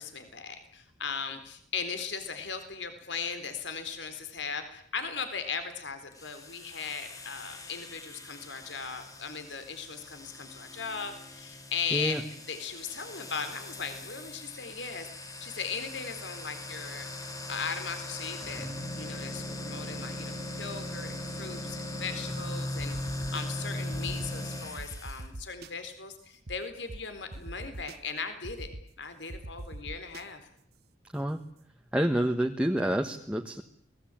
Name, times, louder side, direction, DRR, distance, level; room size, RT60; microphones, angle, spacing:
voice 1, 0.0-15.1 15.4-17.1 17.5-18.7 19.0-28.7 29.0-30.5, left 5 dB, 80° left, 9 dB, 3.9 m, -38 dB
sound 1, 6.1-25.2, left 1 dB, 20° left, 2.4 m, -39 dB
voice 2, 11.9-12.2 31.1-31.4 31.9-33.6, right 1 dB, 5° right, 3 dB, 1.4 m, -28 dB
sound 2, 22.8-23.4 23.9-24.3 24.8-25.7 26.5-26.6 26.9-27.0 27.3-28.0 28.4-28.8 29.3-30.2, right 1 dB, 60° right, 1.3 m, -41 dB
29.5 x 20.5 x 9.0 m, 0.67 s
head